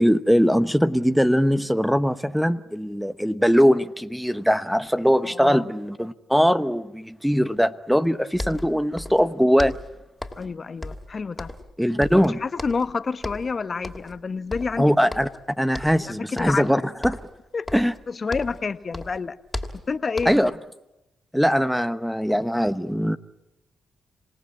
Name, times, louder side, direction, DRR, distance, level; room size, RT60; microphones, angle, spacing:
voice 1, 0.0-9.8 11.8-12.4 14.8-15.3 15.6-17.2 17.7-17.9 20.2-20.5 21.3-23.2, equal, ahead, 12 dB, 1.0 m, -21 dB
voice 2, 5.2-5.6 10.3-11.5 12.1-14.9 16.0-16.8 17.5-17.7 18.1-19.4 19.9-20.5, left 4 dB, 45° left, 12 dB, 1.1 m, -29 dB
sound 1, 8.0-8.1 8.3-9.3 9.6-10.5 10.8-11.7 12.0-12.9 13.2-13.5 13.8-14.2 14.5-15.4 15.7-16.1 16.4-16.7 17.0-18.7 18.9-20.5, left 1 dB, 15° left, 2.8 m, -36 dB
27.0 x 17.5 x 8.6 m, 0.93 s
supercardioid pair, 50°, 0 cm